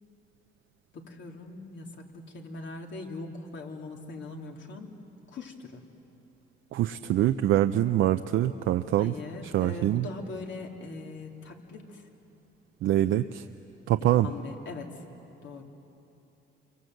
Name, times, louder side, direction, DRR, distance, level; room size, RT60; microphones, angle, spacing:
voice 1, 0.9-4.9 5.3-5.8 9.0-12.0 14.2-15.0 15.4-15.6, left 3 dB, 65° left, 1 dB, 3.1 m, -41 dB
voice 2, 6.7-9.1 9.4-10.1 12.8-13.4 13.9-14.3, right 13 dB, 80° right, 8 dB, 0.6 m, -24 dB
29.0 x 24.0 x 7.9 m, 2.9 s
cardioid pair, 90°, 20 cm